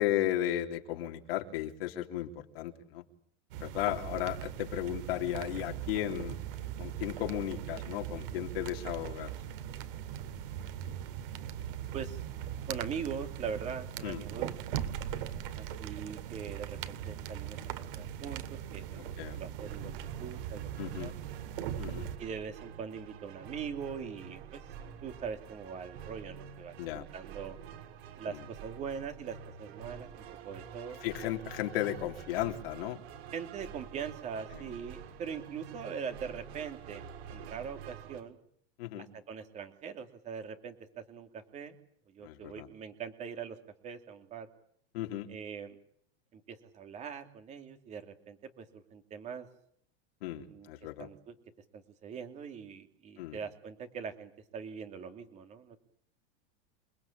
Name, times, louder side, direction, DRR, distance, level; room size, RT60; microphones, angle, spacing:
voice 1, 0.0-3.0 3.6-6.4 6.8-9.3 14.0-14.2 19.2-19.4 20.8-21.1 21.8-22.1 26.8-27.1 28.3-28.4 31.0-33.0 34.5-34.6 38.8-39.1 42.2-42.7 44.9-45.3 50.2-51.1 53.2-53.4, left 13 dB, 60° left, 3 dB, 3.5 m, -35 dB
sound 1, 3.5-22.2, right 10 dB, 55° right, 2.6 m, -40 dB
voice 2, 12.7-14.5 15.6-18.4 18.7-21.1 22.2-24.6 25.0-27.6 28.2-31.0 33.3-37.0 37.3-38.4 39.0-41.8 42.1-43.6 43.8-44.5 45.3-45.8 46.3-49.5 50.5-50.7 51.0-51.3 51.7-55.8, right 6 dB, 20° right, 7 dB, 2.7 m, -42 dB
sound 2, 19.6-38.2, right 7 dB, 70° right, 5.8 m, -48 dB
28.5 x 20.0 x 8.7 m, 0.64 s
supercardioid pair, 175°, 32 cm